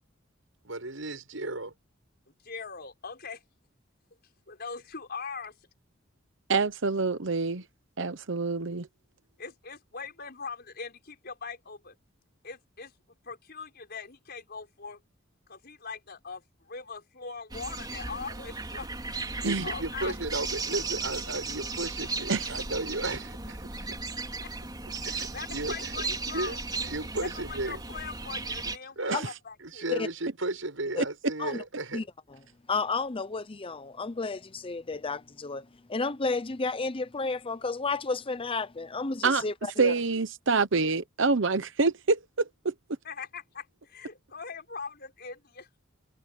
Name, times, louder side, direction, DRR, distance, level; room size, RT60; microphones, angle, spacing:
voice 1, 0.6-1.7 19.4-23.6 23.9-24.0 25.0-26.5 26.8-27.8 28.6-29.2 29.6-32.0, right 2 dB, 90° right, 6.7 m, -34 dB
voice 2, 2.3-3.4 4.5-5.6 9.4-12.0 12.4-12.9 13.2-15.0 15.5-20.1 25.1-26.6 27.3-29.8 43.0-45.7, left 5 dB, 55° left, 5.4 m, -41 dB
voice 3, 6.5-7.6 8.0-8.9 19.4-19.6 22.3-22.5 39.2-39.4 39.8-42.2 42.6-42.7, right 4 dB, 70° right, 1.0 m, -26 dB
sound 1, 17.5-28.8, right 3 dB, 20° right, 3.6 m, -36 dB
voice 4, 32.7-39.9, left 3 dB, 30° left, 0.7 m, -32 dB
head